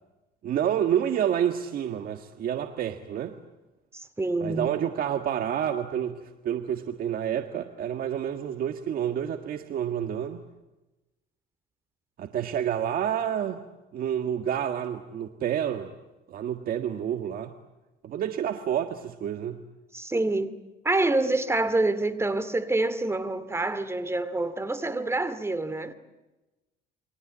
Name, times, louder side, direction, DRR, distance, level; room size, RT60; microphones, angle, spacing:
voice 1, 0.4-3.3 4.4-10.4 12.2-13.6 13.9-15.9 16.3-17.5 18.0-19.6, right 9 dB, 60° right, 1.7 m, -29 dB
voice 2, 3.9-4.7 19.9-20.5 20.8-25.9, right 2 dB, 15° right, 2.5 m, -27 dB
29.0 x 23.0 x 8.9 m
cardioid pair, 110°, 17 cm